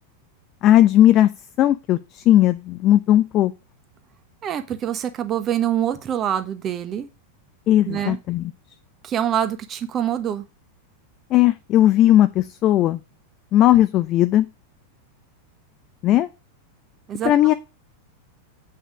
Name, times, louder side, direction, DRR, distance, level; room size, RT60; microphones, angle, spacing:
voice 1, 0.6-1.3 1.6-3.5 7.7-8.5 11.3-13.0 13.5-14.5 16.0-16.3 17.2-17.5, left 13 dB, 35° left, 11 dB, 0.6 m, -17 dB
voice 2, 4.4-7.1 7.8-8.2 9.0-10.4 17.1-17.3, right 10 dB, 30° right, 9 dB, 1.3 m, -25 dB
8.2 x 5.7 x 6.1 m, 0.27 s
figure-of-eight pair, 90°, 0 cm